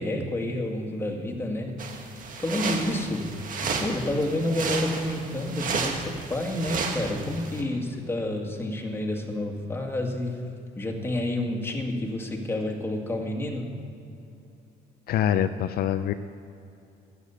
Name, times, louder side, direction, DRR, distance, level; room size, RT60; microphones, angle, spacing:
voice 1, 0.0-1.8 2.3-3.3 3.6-10.4 10.8-13.7, left 1 dB, 15° left, 1 dB, 2.1 m, -29 dB
sound 1, 1.8-7.6, right 4 dB, 55° right, 1.8 m, -32 dB
voice 2, 15.1-16.1, left 10 dB, 65° left, 10 dB, 0.5 m, -24 dB
13.0 x 8.4 x 8.4 m, 2.7 s
cardioid pair, 110°, 17 cm